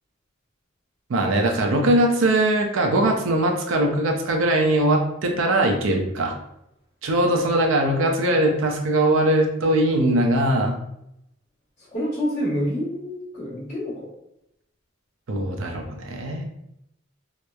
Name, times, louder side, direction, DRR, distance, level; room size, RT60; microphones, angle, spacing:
voice 1, 1.1-6.4 7.0-10.8 15.3-16.4, right 1 dB, 70° right, 2 dB, 0.5 m, -21 dB
voice 2, 11.9-14.0, equal, 35° left, -13 dB, 1.0 m, -27 dB
2.9 x 2.0 x 2.2 m, 0.81 s
head